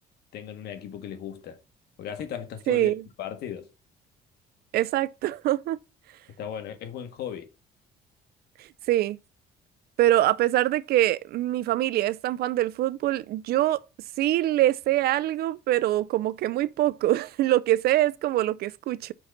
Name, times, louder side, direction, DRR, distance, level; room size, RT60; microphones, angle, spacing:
voice 1, 0.3-1.6 2.0-2.9 3.2-3.7 6.4-7.5, left 9 dB, 75° left, 1.6 m, -36 dB
voice 2, 2.7-3.0 4.7-5.8 8.9-9.2 10.0-13.8 14.2-19.1, right 14 dB, 65° right, 0.5 m, -24 dB
6.2 x 3.9 x 5.8 m
cardioid pair, 110°, 17 cm